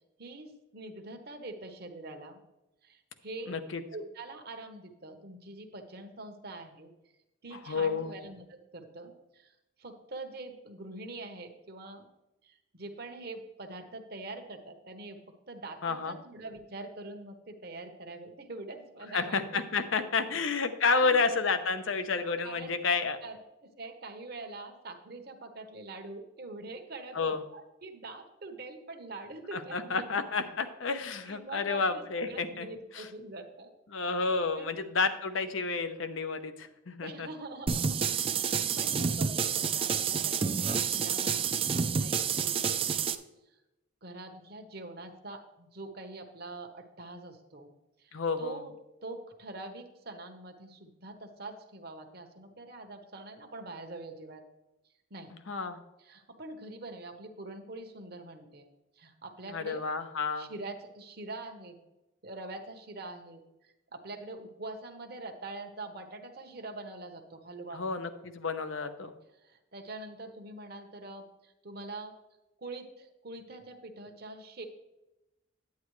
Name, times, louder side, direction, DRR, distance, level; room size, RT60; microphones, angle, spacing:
voice 1, 0.2-2.4 2.8-3.6 3.9-6.9 7.4-12.1 12.4-15.2 15.5-19.4 20.0-20.1 21.0-21.3 22.4-22.8 23.2-30.1 30.4-30.5 31.3-33.7 34.6-34.7 37.0-38.4 38.8-40.6 40.9-42.8 43.5-43.6 44.0-47.7 48.0-48.7 49.0-54.5 55.1-55.3 56.0-58.7 59.0-59.8 60.4-61.8 62.2-67.8 69.4-72.1 72.6-74.7, right 2 dB, 50° right, 6 dB, 1.0 m, -44 dB
voice 2, 3.5-3.8 7.5-8.1 15.8-16.2 19.1-23.2 27.1-27.4 29.5-32.7 32.9-33.1 33.9-37.3 48.1-48.6 55.5-55.8 59.5-60.5 67.7-69.1, left 4 dB, 85° left, 9 dB, 0.8 m, -30 dB
sound 1, 37.7-43.1, right 6 dB, 30° right, 0.4 m, -29 dB
9.5 x 9.4 x 3.2 m, 0.97 s
head